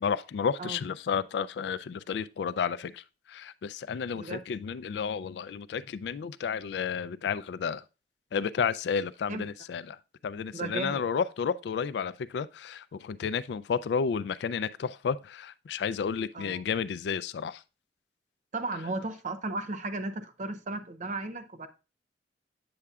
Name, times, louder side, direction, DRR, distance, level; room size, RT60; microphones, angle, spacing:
voice 1, 0.0-7.8 8.3-10.0 10.2-17.6, left 6 dB, 75° left, 0.3 m, -32 dB
voice 2, 10.5-11.2 16.3-16.6 18.5-21.7, right 2 dB, 45° right, 0.6 m, -35 dB
8.6 x 6.7 x 2.3 m
head